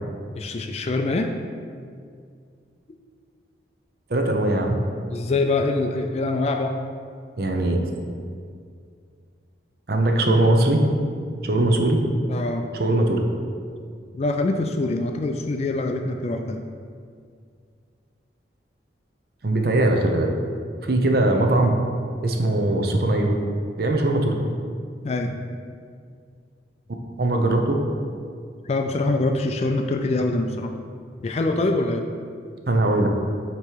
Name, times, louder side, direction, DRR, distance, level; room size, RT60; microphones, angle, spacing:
voice 1, 0.3-1.3 5.1-6.7 12.3-12.6 14.1-16.6 25.0-25.4 28.6-30.7 31.2-32.0, left 2 dB, 35° left, 5 dB, 0.3 m, -24 dB
voice 2, 4.1-4.8 7.4-7.8 9.9-10.8 11.4-12.0 12.8-13.2 19.4-20.3 20.8-21.8 22.2-23.3 23.8-24.4 27.2-27.7 32.7-33.1, right 2 dB, 55° right, 3 dB, 0.7 m, -20 dB
8.3 x 3.0 x 4.6 m, 2.2 s
head